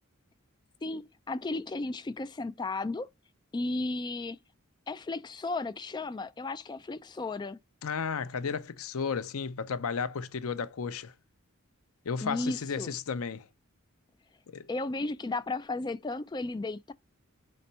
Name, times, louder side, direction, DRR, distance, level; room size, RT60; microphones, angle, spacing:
voice 1, 0.8-3.1 3.5-4.4 4.9-7.6 12.2-12.9 14.7-16.9, left 2 dB, 20° left, 0.3 m, -34 dB
voice 2, 7.8-11.1 12.0-13.4 14.5-14.6, left 5 dB, 80° left, 0.6 m, -33 dB
5.2 x 4.2 x 5.4 m
head